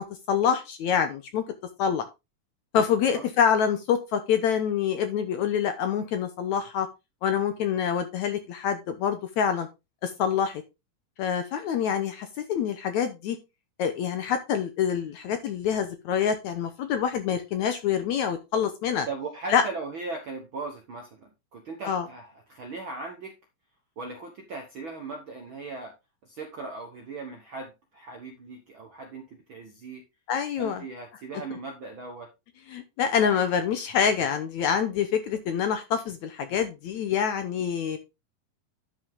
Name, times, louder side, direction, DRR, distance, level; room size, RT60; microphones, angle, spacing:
voice 1, 0.0-1.4 1.8-2.1 2.7-6.9 7.2-9.7 10.0-10.6 11.2-13.4 13.8-19.1 19.5-19.6 21.9-22.1 30.3-30.8 32.7-38.0, left 8 dB, 70° left, 9 dB, 1.9 m, -26 dB
voice 2, 19.0-23.3 24.0-25.9 26.2-30.0 30.6-32.3, right 3 dB, 60° right, 3 dB, 1.3 m, -38 dB
11.0 x 5.6 x 3.7 m, 0.24 s
omnidirectional pair, 4.1 m